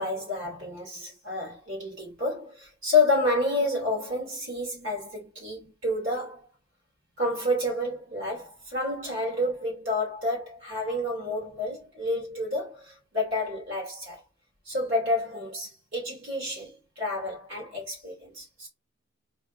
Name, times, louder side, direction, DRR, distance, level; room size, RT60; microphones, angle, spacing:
voice 1, 0.0-6.5 7.2-14.2 14.7-18.7, left 2 dB, 65° right, 2.8 m, -29 dB
4.1 x 3.1 x 3.9 m
head